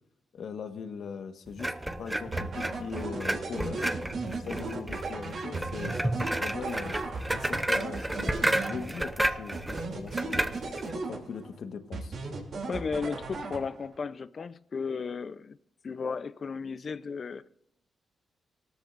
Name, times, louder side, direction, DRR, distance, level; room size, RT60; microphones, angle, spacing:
voice 1, 0.3-3.9 4.4-7.0 7.3-10.5 10.9-12.2, left 6 dB, 70° left, 1.4 m, -40 dB
sound 1, 1.6-10.9, right 1 dB, 10° right, 0.8 m, -32 dB
sound 2, 2.3-9.2 9.5-11.6 11.9-14.0, right 3 dB, 65° right, 2.9 m, -37 dB
voice 2, 12.7-15.6 15.8-17.5, left 5 dB, 45° left, 0.6 m, -34 dB
18.5 x 13.0 x 2.6 m
cardioid pair, 100°, 0 cm